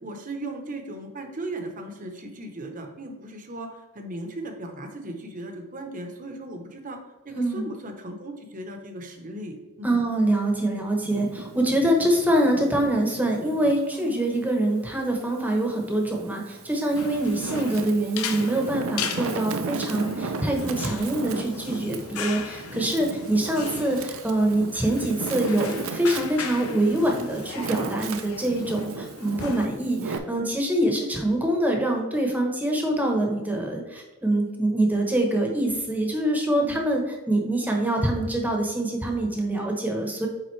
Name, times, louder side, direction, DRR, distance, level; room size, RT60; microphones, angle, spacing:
voice 1, 0.0-7.0 7.2-10.0 13.9-14.2 29.2-29.6 36.6-36.9, right 1 dB, 40° right, 4 dB, 0.8 m, -37 dB
voice 2, 9.8-40.3, right 1 dB, 10° right, 1 dB, 0.9 m, -25 dB
Wind, 11.0-13.8 14.3-15.6 16.2-30.2, right 4 dB, 70° right, 0.5 m, -35 dB
sound 1, 17.0-29.7, left 6 dB, 85° left, 0.6 m, -38 dB
8.8 x 3.7 x 3.2 m, 1.2 s
head